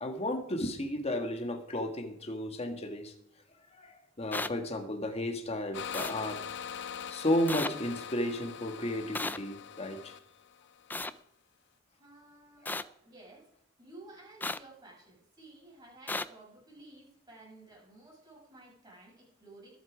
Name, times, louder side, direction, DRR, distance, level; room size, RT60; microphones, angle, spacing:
voice 1, 0.0-3.1 3.7-6.4 7.1-10.1 12.6-12.8, left 1 dB, 30° left, 5 dB, 1.6 m, -33 dB
sound 1, 4.3-4.5 5.9-6.1 7.5-7.7 9.1-9.4 10.9-11.1 12.7-12.8 14.4-14.6 16.1-16.2, left 2 dB, 10° left, 0.4 m, -33 dB
sound 2, 5.7-11.2, left 8 dB, 60° left, 0.6 m, -43 dB
voice 2, 12.0-13.5 13.8-19.7, right 2 dB, 20° right, -3 dB, 6.6 m, -54 dB
21.0 x 8.4 x 4.9 m, 0.70 s
head